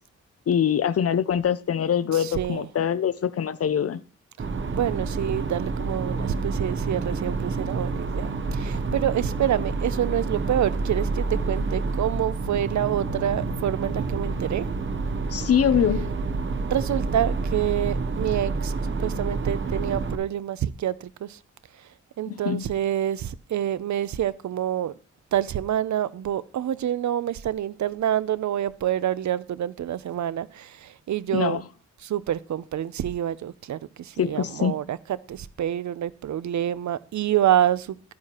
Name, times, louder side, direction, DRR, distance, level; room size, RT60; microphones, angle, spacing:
voice 1, 0.5-4.0 15.3-16.2 22.3-22.7 31.3-31.6 34.2-34.7, left 8 dB, 55° left, 0.6 m, -24 dB
voice 2, 2.1-2.7 4.7-14.7 16.7-18.7 19.0-21.4 21.8-21.9 22.2-24.9 25.3-31.6 32.0-35.0 35.3-38.0, right 11 dB, 75° right, 0.5 m, -27 dB
sound 1, 4.4-20.2, right 3 dB, 40° right, 0.8 m, -28 dB
11.5 x 9.5 x 2.9 m
wide cardioid pair, 120°, 29 cm